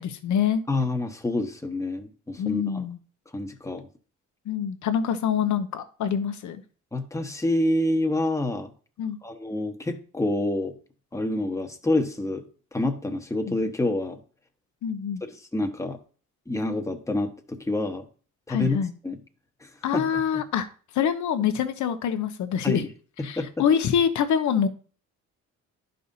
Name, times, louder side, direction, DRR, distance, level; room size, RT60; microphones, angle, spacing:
voice 1, 0.0-0.6 2.4-3.0 4.5-6.6 9.0-9.2 14.8-15.2 18.5-18.9 19.8-20.7 20.9-22.8 23.2-24.7, left 8 dB, 75° left, 10 dB, 0.9 m, -25 dB
voice 2, 0.7-2.9 3.3-3.9 6.9-8.7 9.2-10.7 11.1-12.4 12.7-14.2 15.2-16.0 16.5-18.1 18.5-18.8 19.0-19.2 19.6-20.4 22.6-22.9 23.2-23.6, left 2 dB, 10° left, 4 dB, 1.1 m, -27 dB
11.0 x 5.4 x 2.7 m, 0.40 s
cardioid pair, 90°, 30 cm